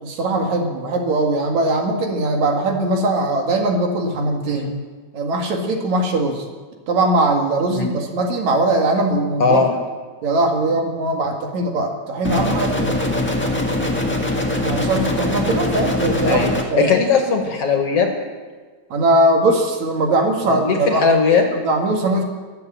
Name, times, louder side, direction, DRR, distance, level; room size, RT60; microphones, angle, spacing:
voice 1, 0.0-4.7 5.1-6.4 6.9-9.6 10.2-13.0 14.6-16.4 16.7-17.0 18.9-21.1 21.5-22.2, right 2 dB, 70° right, 2 dB, 3.2 m, -20 dB
voice 2, 9.4-9.7 13.1-13.3 16.2-18.1 20.4-21.5, left 5 dB, 55° left, 3 dB, 2.5 m, -18 dB
sound 1, 12.2-16.6, left 1 dB, 10° left, 0.7 m, -22 dB
21.0 x 7.9 x 7.6 m, 1.4 s
omnidirectional pair, 3.3 m